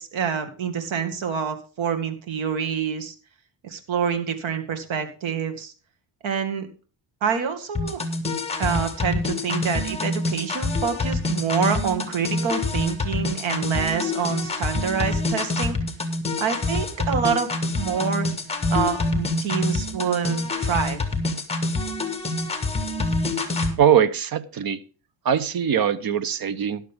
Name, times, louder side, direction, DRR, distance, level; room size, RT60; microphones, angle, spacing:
voice 1, 0.0-3.1 3.6-5.7 6.2-6.7 7.2-8.0 8.6-15.8 16.4-18.3 18.7-21.0, right 6 dB, 80° right, 8 dB, 2.1 m, -27 dB
sound 1, 7.7-23.7, left 2 dB, 15° left, 1.6 m, -26 dB
voice 2, 23.8-24.8 25.2-26.8, right 8 dB, 50° right, 15 dB, 0.8 m, -21 dB
13.0 x 11.0 x 3.6 m, 0.37 s
cardioid pair, 165°, 47 cm